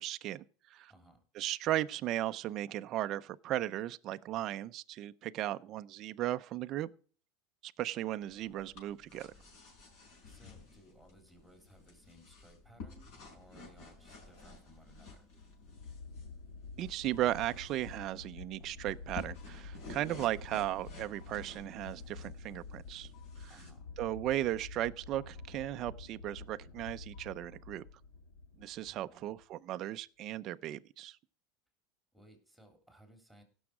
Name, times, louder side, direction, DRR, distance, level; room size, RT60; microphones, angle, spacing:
voice 1, 0.0-0.9 1.4-6.9 7.6-9.3 16.8-23.1 23.4-23.5 24.0-27.8 28.6-31.2, right 14 dB, 40° right, 0.4 m, -36 dB
voice 2, 0.9-1.2 10.2-15.3 23.5-23.9 28.8-29.4 32.1-33.4, right 1 dB, 5° left, 3.1 m, -61 dB
sound 1, 8.2-23.7, left 3 dB, 55° left, 5.9 m, -53 dB
sound 2, 15.3-29.4, left 4 dB, 85° left, 1.8 m, -49 dB
16.5 x 6.2 x 4.8 m
supercardioid pair, 140°, 0 cm